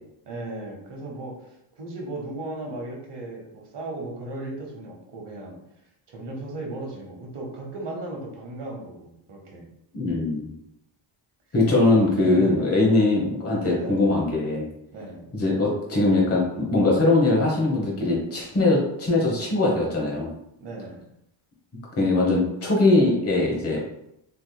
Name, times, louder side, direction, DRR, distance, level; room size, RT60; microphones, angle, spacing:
voice 1, 0.3-5.6 6.1-9.6 11.8-12.8 13.7-14.1 14.9-15.3 20.6-21.1, right 2 dB, 60° right, 0 dB, 1.2 m, -36 dB
voice 2, 9.9-10.5 11.5-14.7 15.3-20.3 22.0-23.8, left 2 dB, 30° left, -2 dB, 1.0 m, -21 dB
3.5 x 3.0 x 2.2 m, 0.80 s
cardioid pair, 90°, 49 cm